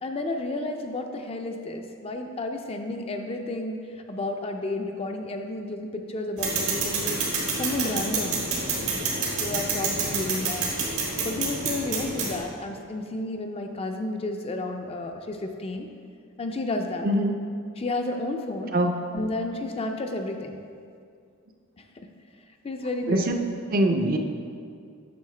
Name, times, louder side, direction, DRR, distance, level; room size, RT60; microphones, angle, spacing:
voice 1, 0.0-7.2 7.5-8.4 9.4-10.7 11.2-15.9 16.4-17.1 17.8-18.8 19.1-20.6 21.8-22.1 22.6-23.4, left 2 dB, 25° left, 4 dB, 0.4 m, -31 dB
sound 1, 6.4-12.4, right 3 dB, 85° right, 1.6 m, -28 dB
voice 2, 17.0-17.4 18.7-19.1 23.1-23.3 23.7-24.2, right 1 dB, 40° right, 5 dB, 0.5 m, -23 dB
8.3 x 6.1 x 3.2 m, 2.3 s
head